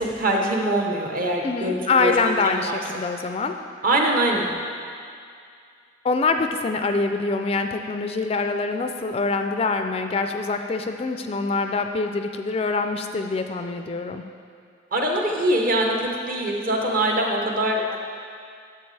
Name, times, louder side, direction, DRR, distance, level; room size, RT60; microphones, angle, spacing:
voice 1, 0.0-2.8 3.8-4.5 14.9-18.0, right 1 dB, 45° right, 1 dB, 1.0 m, -23 dB
voice 2, 1.4-3.5 6.0-14.2, left 3 dB, 30° left, 6 dB, 0.3 m, -24 dB
11.5 x 7.4 x 3.3 m, 2.3 s
head